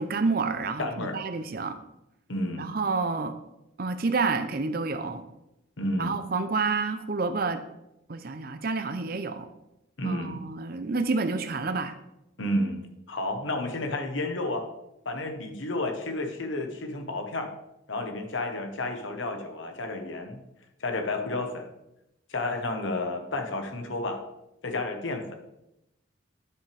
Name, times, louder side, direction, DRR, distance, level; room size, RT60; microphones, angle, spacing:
voice 1, 0.0-1.8 2.6-3.4 3.8-5.2 6.0-7.6 8.1-9.5 10.0-11.9, right 4 dB, 45° right, 10 dB, 0.6 m, -29 dB
voice 2, 0.8-1.2 2.3-2.7 5.8-6.2 10.0-10.4 12.4-12.8 13.1-14.7 15.0-17.5 17.9-20.4 20.8-21.7 22.3-24.2 24.6-25.3, left 2 dB, 70° left, 5 dB, 1.1 m, -31 dB
9.8 x 5.8 x 3.4 m, 0.88 s
head